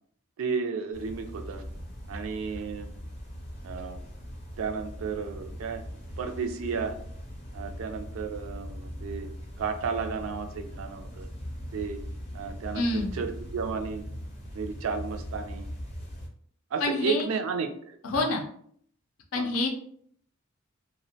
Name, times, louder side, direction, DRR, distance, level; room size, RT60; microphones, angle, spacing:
voice 1, 0.4-1.6 2.1-2.9 3.6-4.0 4.6-5.8 6.2-7.0 7.5-9.3 9.6-11.3 11.7-12.0 12.3-14.0 14.5-15.7 16.7-18.4 19.3-19.5, right 5 dB, 70° right, 6 dB, 0.3 m, -33 dB
sound 1, 0.9-16.3, equal, 30° left, 0.6 m, -40 dB
voice 2, 12.7-13.2 16.8-17.3 18.0-18.4 19.3-19.7, left 2 dB, 75° left, 2 dB, 0.5 m, -27 dB
2.4 x 2.1 x 2.6 m, 0.62 s
head